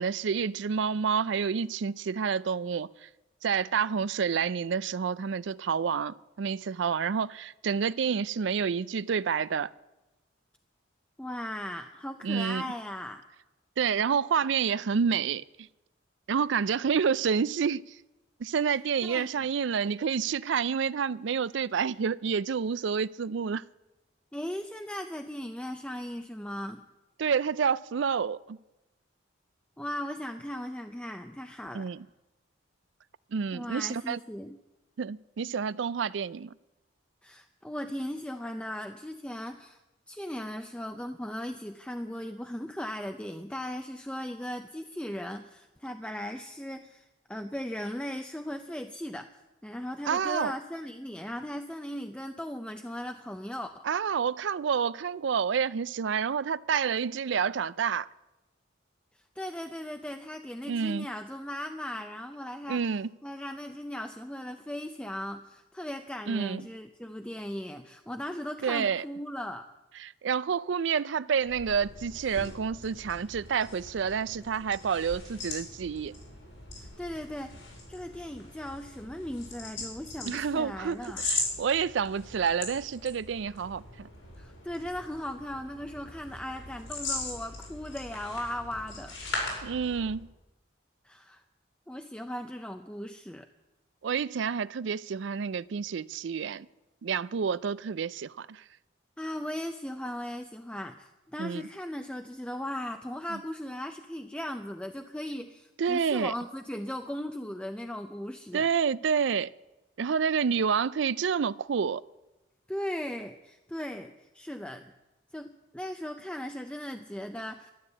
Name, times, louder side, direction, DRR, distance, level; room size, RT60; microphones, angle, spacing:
voice 1, 0.0-3.1 3.4-9.7 12.2-12.7 13.8-15.7 16.3-17.8 18.4-23.6 27.2-28.6 31.7-32.0 33.3-34.2 35.0-36.5 50.1-50.5 53.8-58.1 60.7-61.1 62.7-63.1 66.3-66.6 68.6-69.0 70.0-76.1 80.2-84.1 89.6-90.3 94.0-96.7 97.0-98.6 101.4-101.7 105.8-106.3 108.5-109.5 110.0-112.0, right 6 dB, 70° right, 0.4 m, -29 dB
voice 2, 11.2-13.2 19.0-19.5 24.3-26.8 29.8-31.9 33.5-34.6 37.2-39.8 40.1-53.9 59.4-62.9 63.2-69.7 76.8-77.6 77.9-81.2 84.4-89.1 91.0-91.4 91.9-93.5 99.2-108.7 112.7-114.9 115.3-117.7, left 1 dB, 5° left, 0.5 m, -38 dB
sound 1, 71.4-90.3, left 3 dB, 85° left, 5.7 m, -40 dB
12.5 x 11.5 x 8.3 m
head